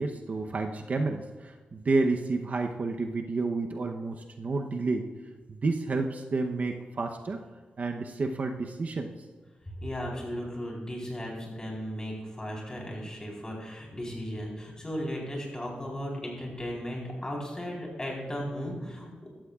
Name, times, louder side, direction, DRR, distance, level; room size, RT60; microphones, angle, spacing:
voice 1, 0.0-5.1 5.5-7.4 7.8-9.1, right 3 dB, 45° right, 4 dB, 0.8 m, -30 dB
voice 2, 9.8-19.1, equal, 20° left, -2 dB, 4.0 m, -36 dB
15.0 x 12.5 x 2.4 m, 1.4 s
cardioid pair, 90°, 3 cm